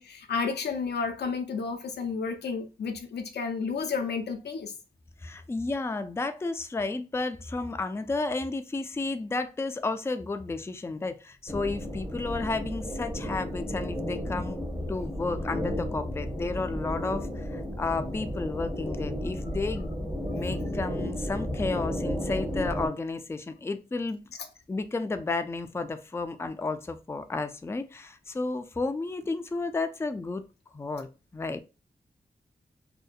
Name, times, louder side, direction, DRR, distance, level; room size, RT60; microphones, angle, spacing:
voice 1, 0.0-4.7 20.3-20.4, left 5 dB, 85° left, 0.4 m, -31 dB
voice 2, 5.2-14.6 14.9-19.9 20.3-24.2 24.7-30.4 30.7-31.1 31.3-31.6, left 3 dB, 15° left, 0.3 m, -32 dB
sound 1, 11.5-22.9, equal, 25° right, 0.9 m, -33 dB
2.6 x 2.1 x 2.3 m
cardioid pair, 40°, 17 cm